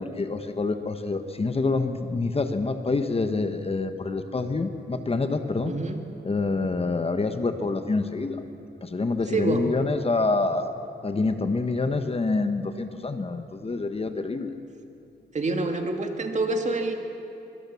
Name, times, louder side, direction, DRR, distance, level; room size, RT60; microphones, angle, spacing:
voice 1, 0.0-5.8 6.2-8.4 8.8-10.7 11.0-14.5, left 3 dB, 30° left, 8 dB, 1.3 m, -27 dB
voice 2, 5.6-6.0 9.3-9.6 15.3-17.0, right 2 dB, 40° right, 4 dB, 2.4 m, -26 dB
24.5 x 23.5 x 7.1 m, 2.8 s
wide cardioid pair, 105°, 19 cm